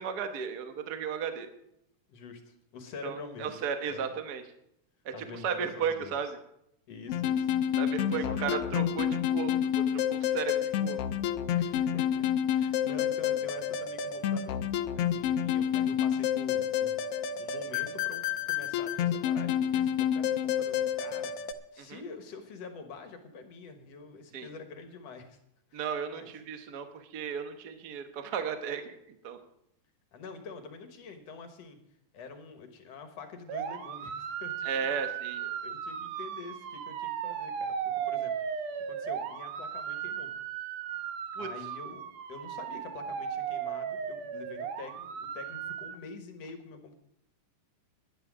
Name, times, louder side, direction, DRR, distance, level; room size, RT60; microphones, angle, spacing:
voice 1, 0.0-1.5 3.0-4.4 5.0-6.4 7.8-11.0 21.8-22.0 24.3-24.5 25.7-29.4 34.6-35.4 41.3-41.5, right 7 dB, 85° right, 7 dB, 0.8 m, -35 dB
voice 2, 2.1-3.5 3.9-4.1 5.1-6.1 6.9-7.8 8.1-8.4 11.5-14.6 15.0-17.1 17.4-21.3 21.7-25.4 25.7-25.8 26.1-26.3 30.1-31.8 32.1-35.0 35.4-40.3 41.4-45.1 45.3-47.0, left 4 dB, 60° left, 6 dB, 2.2 m, -46 dB
sound 1, 7.1-21.5, left 9 dB, 80° left, 1.3 m, -29 dB
sound 2, 33.5-45.9, right 8 dB, 70° right, 1.9 m, -36 dB
11.0 x 10.5 x 6.1 m, 0.77 s
omnidirectional pair, 3.5 m